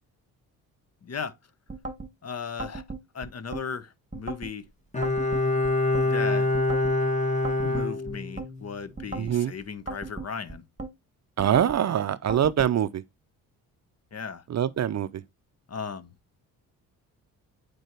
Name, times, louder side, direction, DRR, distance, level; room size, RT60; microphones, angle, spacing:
voice 1, 1.0-1.3 2.2-2.8 3.1-4.6 6.0-6.5 7.6-10.6 14.1-14.4 15.7-16.1, left 6 dB, 35° left, 0.9 m, -36 dB
sound 1, 1.7-2.1 2.6-3.7 4.1-4.5 5.0-6.1 6.5-7.0 7.4-8.5 9.0-9.4 9.9-10.9 11.4-11.8 12.3-12.7, right 2 dB, 15° right, 2.1 m, -37 dB
Bowed string instrument, 4.9-8.7 9.0-9.1, left 2 dB, 15° left, 1.9 m, -25 dB
voice 2, 9.2-9.5 11.4-13.0 14.5-15.2, right 9 dB, 40° right, 0.6 m, -24 dB
8.9 x 4.7 x 2.9 m
hypercardioid pair, 50°, 43 cm